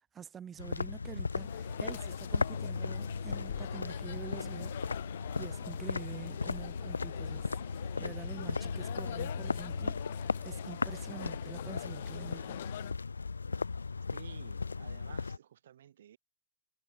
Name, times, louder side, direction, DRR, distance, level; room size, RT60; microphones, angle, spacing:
voice 1, 0.1-4.7 5.4-7.6 8.0-12.6, right 8 dB, 25° right, 0.9 m, -47 dB
sound 1, 0.6-15.4, left 4 dB, 75° left, 0.4 m, -37 dB
sound 2, 1.4-12.9, left 12 dB, 60° left, 2.1 m, -45 dB
voice 2, 14.1-16.2, right 10 dB, 60° right, 6.4 m, -53 dB
figure-of-eight pair, 90°, 0 cm